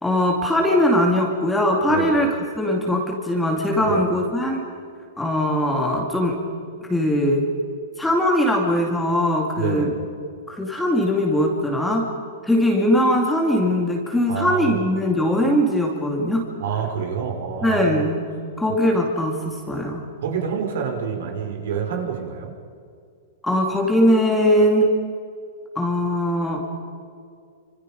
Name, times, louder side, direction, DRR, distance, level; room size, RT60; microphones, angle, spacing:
voice 1, 0.0-2.3 2.6-4.6 5.2-6.4 6.9-7.5 8.0-9.9 10.5-12.1 12.4-16.4 17.6-18.2 18.6-20.1 23.4-24.9 25.8-26.6, left 1 dB, 5° left, 0 dB, 2.3 m, -20 dB
voice 2, 1.9-2.2 3.9-4.0 9.6-9.9 14.3-14.9 16.6-18.1 20.2-22.5, right 7 dB, 65° right, 2 dB, 5.5 m, -27 dB
29.0 x 26.5 x 5.3 m, 2.3 s
supercardioid pair, 170°, 0 cm